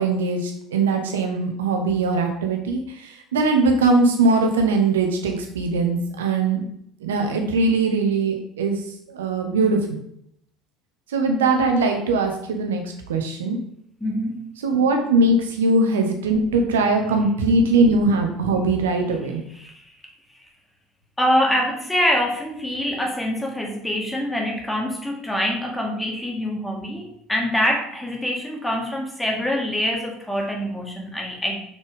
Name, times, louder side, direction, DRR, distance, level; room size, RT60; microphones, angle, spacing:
voice 1, 0.0-6.6 7.0-8.8 9.1-10.0 11.1-12.8 13.1-13.6 14.6-19.4, right 3 dB, 75° right, 3 dB, 1.3 m, -21 dB
voice 2, 14.0-14.5 19.5-19.9 21.2-31.6, equal, 10° left, 0 dB, 2.2 m, -25 dB
6.4 x 6.0 x 3.7 m, 0.71 s
figure-of-eight pair, 65°, 0 cm